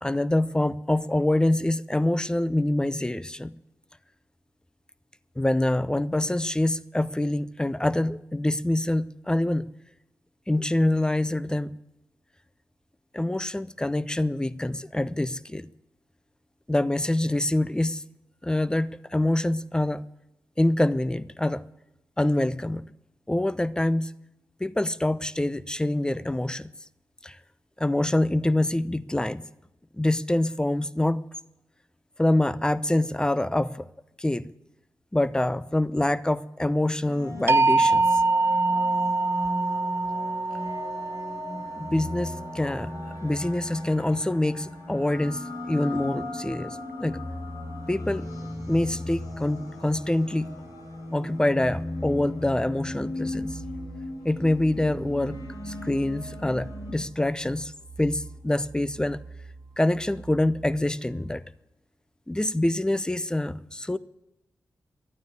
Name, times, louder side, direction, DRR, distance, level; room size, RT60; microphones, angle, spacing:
voice 1, 0.0-3.5 5.4-9.7 10.5-11.7 13.1-15.7 16.7-18.0 18.4-20.0 20.6-21.6 22.2-22.9 23.3-24.1 24.6-26.7 27.2-27.4 27.8-29.4 29.9-31.2 32.2-33.9 34.2-34.5 35.1-38.2 41.8-42.9 43.2-47.2 47.9-48.3 48.7-50.5 51.1-53.6 54.2-55.4 55.6-57.7 58.0-59.2 59.8-61.4 62.3-64.0, left 1 dB, 10° left, 15 dB, 0.7 m, -25 dB
sound 1, 37.1-56.9, left 1 dB, 80° left, 4.3 m, -36 dB
sound 2, 37.5-43.5, right 3 dB, 35° right, 0.4 m, -25 dB
sound 3, 53.3-61.5, right 4 dB, 75° right, 1.2 m, -44 dB
12.0 x 9.4 x 9.6 m, 0.92 s
supercardioid pair, 45°, 6 cm